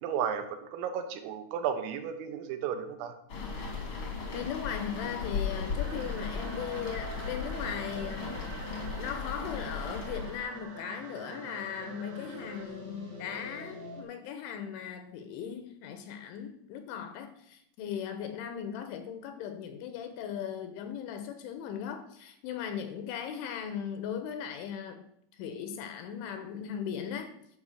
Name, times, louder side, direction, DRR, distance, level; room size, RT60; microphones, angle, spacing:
voice 1, 0.0-3.1, right 8 dB, 80° right, 6 dB, 3.7 m, -33 dB
sound 1, 3.3-10.4, left 5 dB, 50° left, 1.5 m, -36 dB
sound 2, 4.2-14.0, right 2 dB, 20° right, 1.3 m, -46 dB
voice 2, 4.3-8.3 9.0-25.0 25.3-27.3, left 8 dB, 75° left, 8 dB, 3.1 m, -38 dB
sound 3, 5.8-12.7, right 5 dB, 65° right, 2.9 m, -50 dB
11.5 x 5.6 x 6.5 m, 0.74 s
omnidirectional pair, 6.0 m